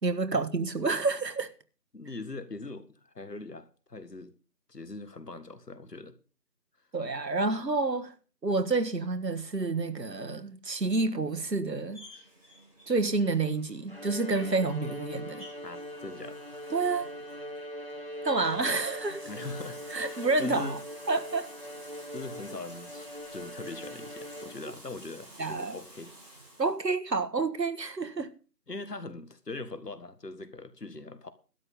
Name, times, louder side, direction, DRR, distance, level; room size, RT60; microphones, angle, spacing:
voice 1, 0.0-1.5 6.9-8.1 8.4-12.0 12.9-15.4 16.7-17.1 18.2-19.2 19.9-20.8 21.1-21.5 25.4-25.8 26.6-28.3, right 3 dB, 90° right, 1.6 m, -29 dB
voice 2, 1.9-4.4 4.7-6.2 15.6-16.4 19.3-20.8 22.1-26.1 28.7-31.3, left 3 dB, 75° left, 1.8 m, -41 dB
Bathtub (filling or washing), 11.9-26.7, right 1 dB, 20° right, 7.4 m, -51 dB
Bowed string instrument, 13.9-24.9, left 1 dB, 35° right, 1.0 m, -42 dB
12.5 x 9.4 x 5.4 m
figure-of-eight pair, 180°, 49 cm